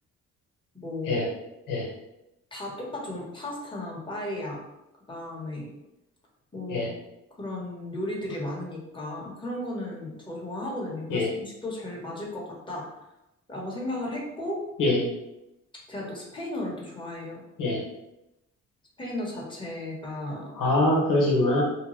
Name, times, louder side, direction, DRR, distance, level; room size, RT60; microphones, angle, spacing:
voice 1, 0.7-1.2 2.5-4.6 5.1-5.7 6.5-6.9 7.3-12.8 13.5-14.6 15.9-17.4 19.0-20.5, left 1 dB, 15° left, -3 dB, 1.0 m, -35 dB
voice 2, 20.6-21.6, left 2 dB, 80° left, -3 dB, 1.0 m, -23 dB
2.9 x 2.1 x 3.0 m, 0.92 s
supercardioid pair, 65°, 32 cm